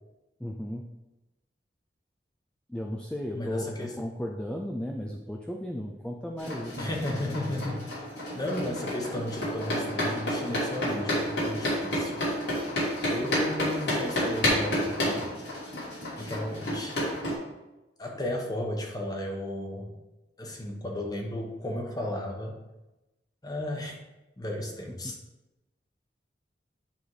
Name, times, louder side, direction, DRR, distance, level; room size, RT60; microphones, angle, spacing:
voice 1, 0.4-0.9 2.7-6.8 10.9-11.1 16.7-16.8 25.0-25.2, left 1 dB, 5° left, 0 dB, 0.5 m, -35 dB
voice 2, 3.3-3.9 6.8-8.1 8.3-12.3 13.1-15.3 16.2-17.0 18.0-19.9 20.4-22.6 23.4-24.0 24.4-25.2, left 1 dB, 20° left, 0 dB, 1.2 m, -34 dB
sound 1, 6.4-17.3, equal, 80° left, 2.5 m, -30 dB
10.0 x 3.5 x 4.8 m, 1.0 s
head